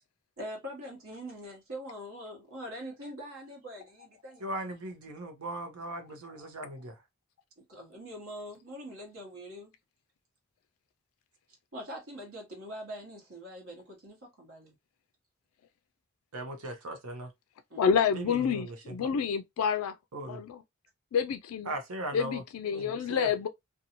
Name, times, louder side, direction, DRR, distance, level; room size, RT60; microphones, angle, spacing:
voice 1, 0.4-4.6 7.6-9.7 11.7-14.7 17.7-18.1, equal, 65° right, 1.1 m, -43 dB
voice 2, 4.4-7.0 16.3-17.3 18.1-19.1 20.1-20.4 21.7-22.4 22.7-23.3, right 1 dB, 90° right, 0.8 m, -38 dB
voice 3, 17.8-19.9 20.3-20.6 21.1-21.7 22.1-23.5, left 7 dB, 80° left, 0.3 m, -28 dB
2.6 x 2.3 x 2.8 m
head